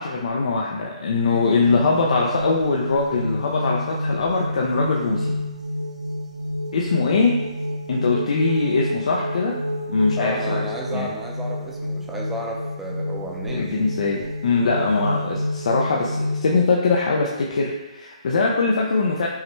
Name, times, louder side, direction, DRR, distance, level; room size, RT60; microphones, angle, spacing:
voice 1, 0.0-5.3 6.7-7.3 7.9-9.6 9.9-10.6 10.9-11.1 13.5-19.3, left 4 dB, 65° left, -2 dB, 0.5 m, -22 dB
sound 1, 1.3-16.6, left 1 dB, 70° right, 1.0 m, -29 dB
voice 2, 10.2-13.8, right 1 dB, 5° right, -2 dB, 0.5 m, -32 dB
5.5 x 2.2 x 3.0 m, 1.1 s
hypercardioid pair, 150°, 4 cm